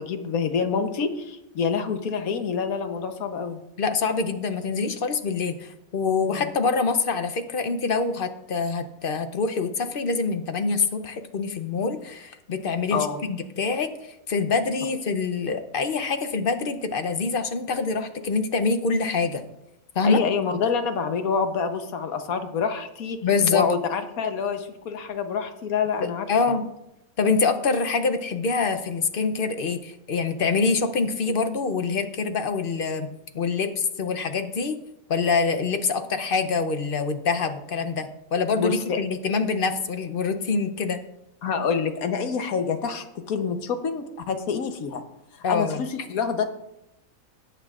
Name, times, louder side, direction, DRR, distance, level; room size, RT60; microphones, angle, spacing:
voice 1, 0.0-3.6 6.2-6.5 12.9-13.2 20.0-23.2 23.5-26.3 38.6-39.0 41.4-45.0 45.3-46.4, left 6 dB, 75° left, 7 dB, 1.3 m, -27 dB
voice 2, 3.8-13.1 13.6-19.4 20.0-20.2 23.2-23.7 26.3-26.6 27.2-33.1 33.3-34.8 35.1-41.0 45.4-45.8, left 4 dB, 50° left, 8 dB, 0.7 m, -25 dB
18.0 x 8.1 x 2.4 m, 0.86 s
omnidirectional pair, 1.5 m